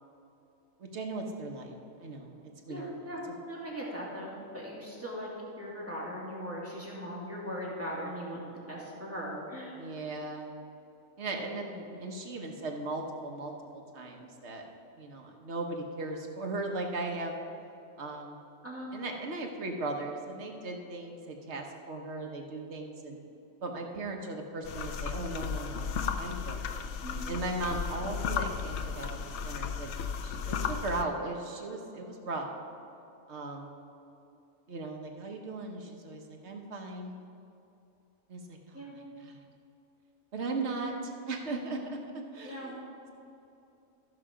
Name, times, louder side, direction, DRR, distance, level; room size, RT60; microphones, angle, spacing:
voice 1, 0.8-2.4 2.6-2.9 3.3-3.4 9.8-10.5 11.2-11.7 12.0-14.6 15.0-17.3 18.0-18.4 18.9-23.2 23.6-26.6 27.3-29.9 30.2-32.5 33.3-33.8 34.7-37.2 38.3-38.9 39.2-39.4 40.3-41.8 42.3-42.8, right 2 dB, 55° right, 1 dB, 1.3 m, -37 dB
voice 2, 2.7-5.3 5.6-9.9 11.7-11.8 18.6-18.9 27.0-27.2 38.7-39.0 42.4-42.7, equal, 10° right, -6 dB, 2.1 m, -39 dB
sound 1, 24.6-31.0, left 6 dB, 65° left, 0.8 m, -35 dB
14.0 x 5.7 x 5.0 m, 2.8 s
omnidirectional pair, 1.4 m